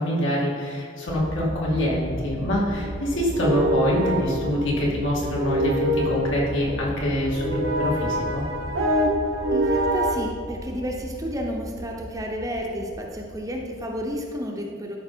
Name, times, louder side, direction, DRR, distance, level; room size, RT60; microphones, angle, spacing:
voice 1, 0.0-8.4, equal, 70° left, -5 dB, 2.6 m, -25 dB
sound 1, 1.1-14.2, equal, 20° left, 0.8 m, -36 dB
sound 2, 2.2-10.2, equal, 80° right, 1.1 m, -26 dB
voice 2, 9.5-15.0, equal, 15° right, 0 dB, 0.8 m, -31 dB
12.5 x 5.3 x 4.4 m, 2.1 s
head